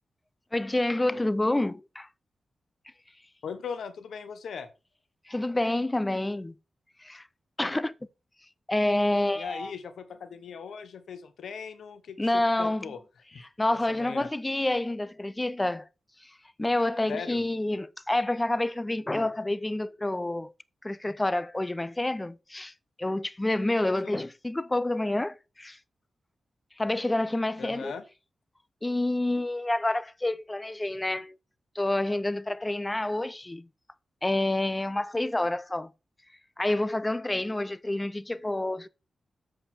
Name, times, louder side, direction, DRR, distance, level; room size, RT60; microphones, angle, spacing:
voice 1, 0.5-2.1 5.3-6.6 7.0-7.3 7.6-7.9 8.7-9.7 12.2-12.9 13.6-15.9 16.6-20.5 20.8-22.7 23.0-25.8 26.8-27.9 28.8-31.4 31.7-33.7 34.2-35.9 36.6-38.9, left 1 dB, 15° left, 0.5 m, -28 dB
voice 2, 3.4-4.7 9.3-13.0 13.3-13.4 13.9-14.3 17.1-17.4 24.0-24.2 27.6-28.0, left 6 dB, 90° left, 1.0 m, -39 dB
7.8 x 6.6 x 4.3 m
cardioid pair, 90°, 0 cm